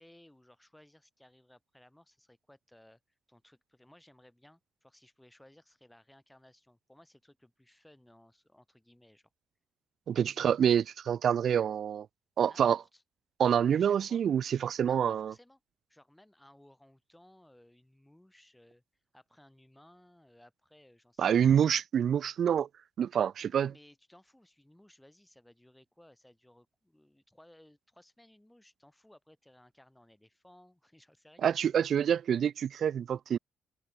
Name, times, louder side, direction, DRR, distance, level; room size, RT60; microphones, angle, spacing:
voice 1, 0.0-3.0 3.3-9.3 12.4-13.0 13.7-14.2 14.8-15.6 15.9-18.8 19.1-21.8 23.4-31.9, left 1 dB, 5° left, 4.5 m, -60 dB
voice 2, 10.1-12.1 12.4-12.8 13.4-15.3 21.2-22.7 23.0-23.7 31.4-33.4, right 8 dB, 60° right, 0.4 m, -27 dB
cardioid pair, 90°, 0 cm